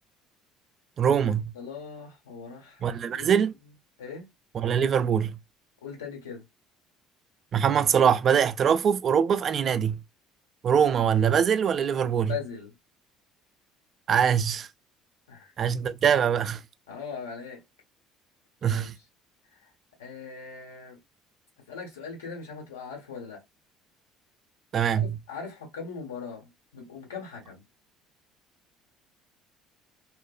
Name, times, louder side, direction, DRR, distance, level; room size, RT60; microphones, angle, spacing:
voice 1, 1.0-1.5 2.8-3.5 4.5-5.4 7.5-10.0 10.6-12.4 14.1-14.7 15.6-16.6 18.6-19.0 24.7-25.2, right 8 dB, 45° right, 0.3 m, -23 dB
voice 2, 1.5-3.3 4.0-4.3 5.8-6.4 12.2-12.7 15.3-15.5 16.9-17.6 18.6-18.9 19.5-19.6 20.0-21.0 21.7-23.4 25.0-27.6, left 6 dB, 80° left, 1.1 m, -40 dB
3.0 x 2.0 x 2.2 m
hypercardioid pair, 60°, 0 cm